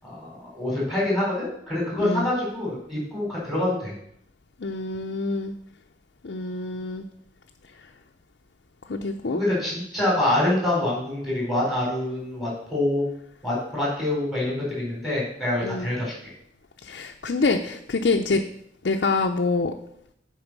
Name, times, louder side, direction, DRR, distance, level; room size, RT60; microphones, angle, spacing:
voice 1, 0.0-3.9 9.3-13.0 13.4-16.3, left 1 dB, ahead, -6 dB, 4.1 m, -26 dB
voice 2, 2.0-2.3 4.6-5.5 6.2-7.0 8.9-9.4 15.6-15.9 16.8-18.4 18.8-19.7, left 3 dB, 65° left, 2 dB, 0.6 m, -26 dB
8.7 x 4.8 x 6.0 m, 0.71 s
head